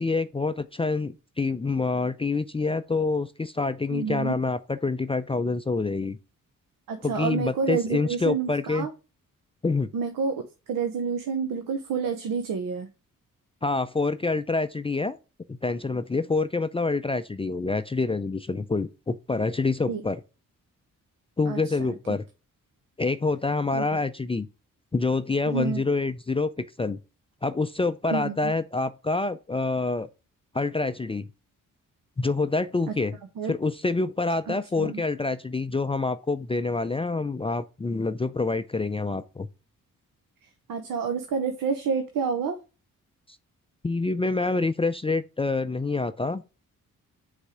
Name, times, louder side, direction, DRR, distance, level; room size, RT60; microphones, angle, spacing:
voice 1, 0.0-6.2 7.0-8.9 9.6-9.9 13.6-15.2 15.5-20.2 21.4-22.2 23.0-24.5 24.9-27.0 27.4-30.1 30.5-31.3 32.2-33.2 33.4-39.5 43.8-46.4, left 3 dB, 15° left, 0.4 m, -27 dB
voice 2, 3.9-4.3 6.9-8.9 9.9-10.4 10.7-12.9 19.9-20.0 21.5-21.7 23.7-23.8 25.5-25.8 28.1-28.5 33.4-33.6 34.7-35.0 40.7-42.6, right 5 dB, 80° right, 0.8 m, -28 dB
5.3 x 3.6 x 4.9 m
cardioid pair, 70°, 33 cm